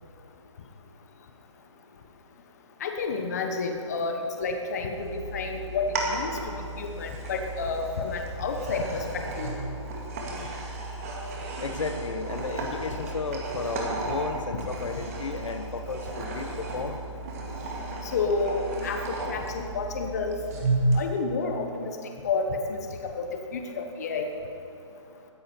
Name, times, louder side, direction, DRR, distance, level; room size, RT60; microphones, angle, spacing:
voice 1, 2.8-9.6 18.0-20.3 20.9-21.9 22.2-24.3, left 4 dB, 30° left, 4 dB, 1.0 m, -30 dB
sound 1, 4.9-21.0, right 2 dB, 25° right, 1.9 m, -33 dB
voice 2, 11.6-17.0, left 4 dB, 75° left, 8 dB, 1.1 m, -33 dB
15.5 x 13.0 x 4.5 m, 2.6 s
hypercardioid pair, 170°, 16 cm